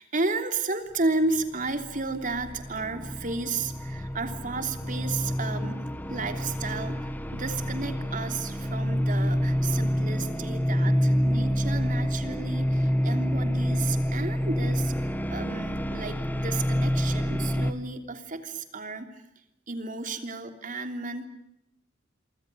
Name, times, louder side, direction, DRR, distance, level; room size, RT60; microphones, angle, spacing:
voice 1, 0.0-19.2 19.7-21.3, right 3 dB, 45° right, 6 dB, 3.2 m, -33 dB
sound 1, 1.3-17.7, equal, 10° left, 1.6 m, -28 dB
27.0 x 25.5 x 6.9 m, 0.83 s
head